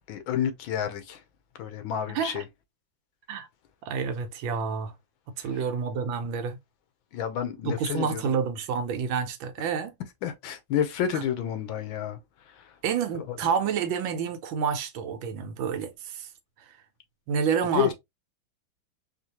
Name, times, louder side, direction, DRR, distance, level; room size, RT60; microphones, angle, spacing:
voice 1, 0.1-1.2 1.6-2.4 5.4-5.5 7.1-8.3 10.2-12.2 12.5-12.6 13.3-13.4 17.7-17.9, left 9 dB, 85° left, 1.5 m, -30 dB
voice 2, 3.9-4.9 5.4-6.6 7.6-9.9 11.1-11.2 12.8-16.3 16.7-16.8 17.3-17.9, right 6 dB, 80° right, 1.5 m, -29 dB
4.4 x 2.5 x 2.8 m
omnidirectional pair, 2.1 m